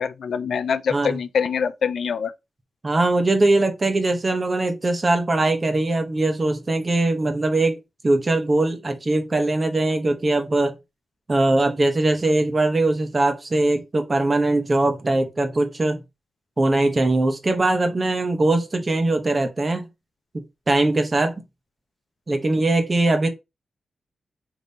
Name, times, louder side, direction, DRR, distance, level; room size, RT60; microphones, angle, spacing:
voice 1, 0.0-2.3, left 6 dB, 75° left, 0.3 m, -24 dB
voice 2, 2.8-10.8 11.3-16.0 16.6-19.8 20.3-21.4 22.3-23.3, right 2 dB, 30° right, 0.9 m, -21 dB
5.2 x 2.9 x 2.8 m
wide cardioid pair, 115°, 0 cm